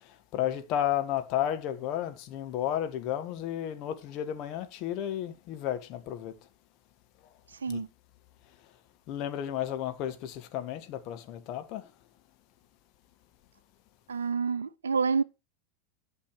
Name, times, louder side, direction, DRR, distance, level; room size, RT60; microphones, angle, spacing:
voice 1, 0.3-6.3 7.7-7.8 9.1-11.8, left 11 dB, 40° left, 1.6 m, -32 dB
voice 2, 7.5-7.9 14.1-15.2, right 5 dB, 70° right, 0.7 m, -28 dB
11.5 x 5.4 x 6.5 m
figure-of-eight pair, 90°, 0 cm